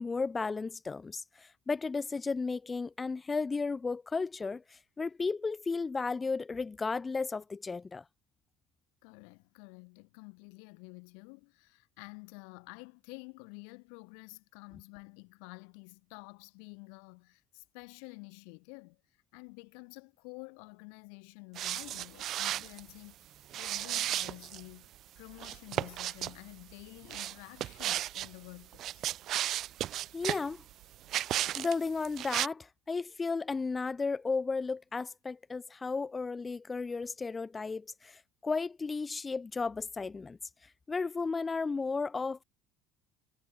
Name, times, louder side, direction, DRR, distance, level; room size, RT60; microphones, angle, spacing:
voice 1, 0.0-8.0 30.1-30.6 31.6-40.4 40.9-42.4, left 4 dB, 20° left, 0.3 m, -34 dB
voice 2, 9.0-19.0 19.3-29.1, left 40 dB or more, 80° left, 0.6 m, -50 dB
sound 1, 21.6-22.8 23.5-24.6 25.4-26.3 27.1-28.3 28.7-30.5 31.1-31.7 32.0-32.5, right 13 dB, 55° right, 0.4 m, -34 dB
sound 2, 24.8-31.1, right 26 dB, 75° right, 7.6 m, -63 dB
supercardioid pair, 105°, 0 cm